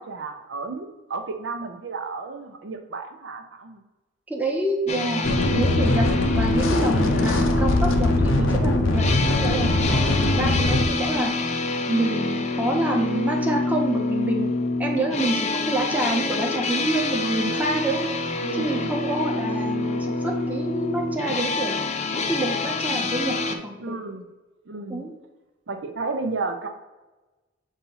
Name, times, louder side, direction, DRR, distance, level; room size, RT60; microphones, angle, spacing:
voice 1, 0.0-3.8 18.4-19.7 20.1-20.2 23.8-24.2 24.7-25.0 25.7-26.7, right 3 dB, 65° right, 5 dB, 0.7 m, -33 dB
voice 2, 4.3-11.6 11.9-18.1 18.6-21.8 22.2-24.0 24.9-25.1, right 1 dB, 10° right, 0 dB, 0.9 m, -27 dB
sound 1, 4.9-23.6, left 2 dB, 35° left, 0.5 m, -27 dB
sound 2, 5.2-10.9, left 2 dB, 85° left, 0.7 m, -22 dB
7.2 x 2.8 x 5.5 m, 1.1 s
head